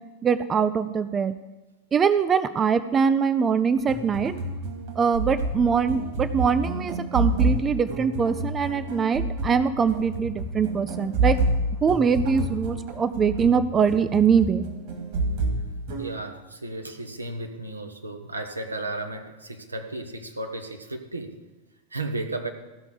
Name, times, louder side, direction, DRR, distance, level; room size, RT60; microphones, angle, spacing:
voice 1, 0.2-1.3 1.9-4.4 5.0-11.4 11.8-14.7, right 6 dB, 20° right, 13 dB, 0.4 m, -23 dB
sound 1, 3.8-16.1, right 2 dB, 50° right, 2.4 m, -29 dB
voice 2, 16.0-21.4 21.9-22.5, right 2 dB, 80° right, 5 dB, 1.1 m, -34 dB
14.5 x 5.8 x 6.8 m, 1.1 s
figure-of-eight pair, 90°, 0 cm